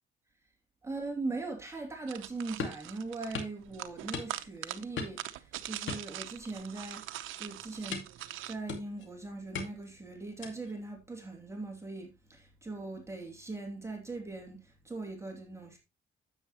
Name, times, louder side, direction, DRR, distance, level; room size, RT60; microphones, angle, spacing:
voice 1, 0.8-8.0 8.5-15.8, right 3 dB, 15° right, 2.8 m, -40 dB
sound 1, 2.1-8.6, right 14 dB, 85° right, 0.8 m, -43 dB
sound 2, 2.6-2.9 3.3-3.6 4.1-4.6 5.0-5.3 5.9-6.6 7.0-7.2 7.9-8.2 8.7-9.1 9.5-9.9 10.4-10.7, left 5 dB, 70° left, 2.3 m, -39 dB
9.7 x 8.2 x 3.0 m
cardioid pair, 90°, 20 cm